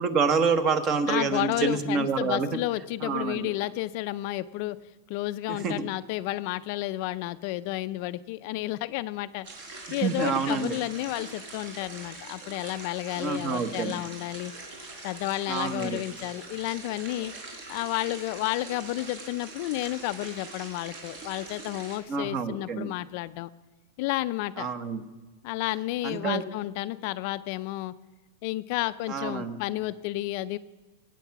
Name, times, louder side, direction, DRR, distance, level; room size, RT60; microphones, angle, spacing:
voice 1, 0.0-2.5 3.0-3.5 5.5-5.8 10.0-10.8 13.2-14.0 15.5-16.0 22.1-22.9 24.6-25.0 26.0-26.4 29.1-29.6, right 5 dB, 30° right, 11 dB, 1.1 m, -27 dB
voice 2, 1.1-4.8 5.1-9.5 9.9-14.5 15.0-17.3 17.7-23.5 24.0-24.7 25.4-27.9 28.4-30.6, left 16 dB, 45° left, 13 dB, 0.4 m, -31 dB
sound 1, 9.4-22.0, right 3 dB, 50° right, 4.6 m, -43 dB
23.5 x 9.2 x 5.9 m, 1.3 s
supercardioid pair, 160°, 0 cm